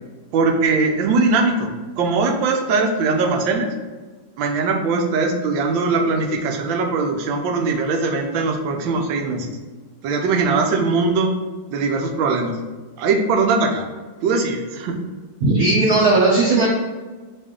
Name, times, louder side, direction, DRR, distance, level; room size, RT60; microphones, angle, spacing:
voice 1, 0.3-1.7 2.0-3.7 4.4-9.5 10.0-11.3 11.7-12.6 13.0-13.9 14.2-14.9, right 3 dB, 90° right, 3 dB, 1.4 m, -20 dB
voice 2, 15.4-16.7, right 2 dB, 65° right, -4 dB, 1.0 m, -16 dB
4.3 x 3.1 x 3.6 m, 1.3 s
omnidirectional pair, 2.0 m